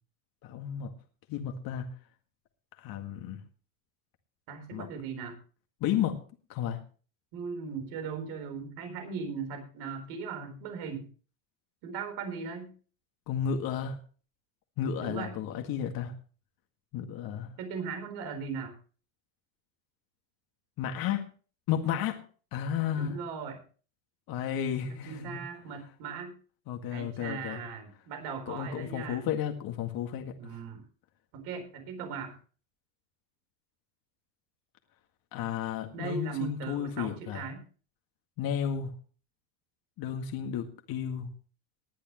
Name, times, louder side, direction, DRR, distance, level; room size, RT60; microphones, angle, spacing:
voice 1, 0.4-0.9 1.3-1.9 2.8-3.4 4.7-4.9 5.8-6.2 6.5-6.8 13.3-14.0 14.8-16.1 16.9-17.5 20.8-21.3 21.7-22.2 22.5-23.2 24.3-25.4 26.7-27.6 28.5-30.3 35.3-37.4 38.4-38.9 40.0-41.3, left 9 dB, 60° left, 4 dB, 2.0 m, -32 dB
voice 2, 4.5-5.4 7.3-11.1 11.8-12.7 15.0-15.4 17.6-18.8 22.9-23.6 24.9-26.3 26.9-29.2 30.4-30.8 31.3-32.3 35.9-37.6, right 5 dB, 75° right, 6 dB, 4.3 m, -38 dB
20.0 x 10.5 x 3.1 m, 0.38 s
supercardioid pair, 95°, 40 cm